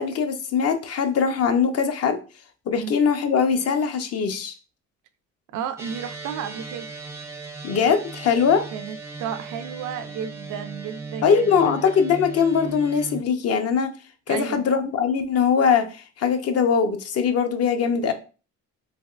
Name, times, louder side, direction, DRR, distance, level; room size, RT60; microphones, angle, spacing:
voice 1, 0.0-2.2 2.7-4.6 7.6-8.7 11.2-13.9 14.3-18.1, left 6 dB, 55° left, 0.6 m, -21 dB
voice 2, 5.5-6.9 8.7-11.8 14.3-14.7, right 8 dB, 80° right, 0.5 m, -33 dB
sound 1, 5.8-13.2, right 4 dB, 10° right, 0.4 m, -37 dB
3.3 x 3.0 x 2.4 m
cardioid pair, 90°, 30 cm